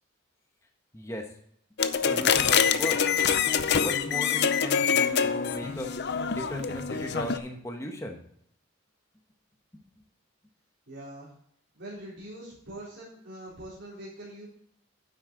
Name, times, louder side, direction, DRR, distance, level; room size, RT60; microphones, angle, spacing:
voice 1, 0.9-1.3 2.0-3.0 3.8-5.9 6.3-8.2 9.7-9.8, equal, 15° left, 3 dB, 1.1 m, -37 dB
sound 1, 1.8-7.4, left 7 dB, 50° left, 0.6 m, -25 dB
voice 2, 10.9-11.3 11.7-14.5, right 1 dB, 55° right, -6 dB, 3.7 m, -43 dB
9.7 x 8.0 x 3.8 m, 0.67 s
head